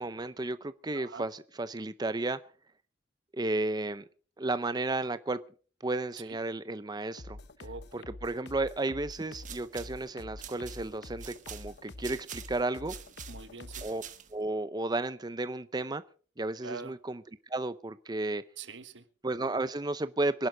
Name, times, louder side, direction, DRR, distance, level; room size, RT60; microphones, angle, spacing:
voice 1, 0.0-2.4 3.3-4.0 4.4-5.4 5.8-7.4 7.9-13.0 13.8-14.0 14.3-16.0 16.4-18.4 19.2-20.5, right 2 dB, 25° right, 0.6 m, -33 dB
voice 2, 0.9-1.2 6.2-6.4 7.6-7.9 13.3-13.9 16.6-16.9 18.6-19.0, right 4 dB, 90° right, 1.4 m, -44 dB
sound 1, 7.2-14.0, left 2 dB, 65° left, 1.0 m, -47 dB
sound 2, 9.2-14.5, right 9 dB, 45° right, 1.4 m, -47 dB
25.5 x 11.0 x 3.9 m
head